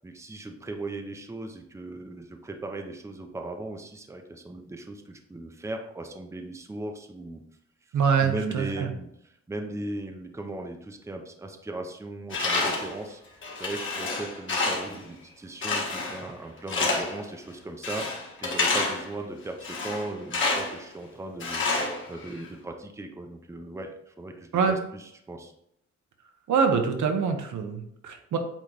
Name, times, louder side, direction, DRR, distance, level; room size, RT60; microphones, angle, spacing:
voice 1, 0.0-7.4 8.2-13.2 13.6-18.1 18.4-21.7 22.1-24.6 24.9-25.5, right 2 dB, 10° right, 4 dB, 0.6 m, -38 dB
voice 2, 7.9-8.9 24.5-24.8 26.5-28.4, right 6 dB, 85° right, 4 dB, 1.1 m, -24 dB
Tools, 12.3-13.0 13.4-15.0 15.6-16.3 16.7-17.2 17.8-19.1 19.6-20.8 21.4-22.5, left 3 dB, 40° left, 1.5 m, -28 dB
8.4 x 3.1 x 4.0 m, 0.76 s
wide cardioid pair, 145°, 29 cm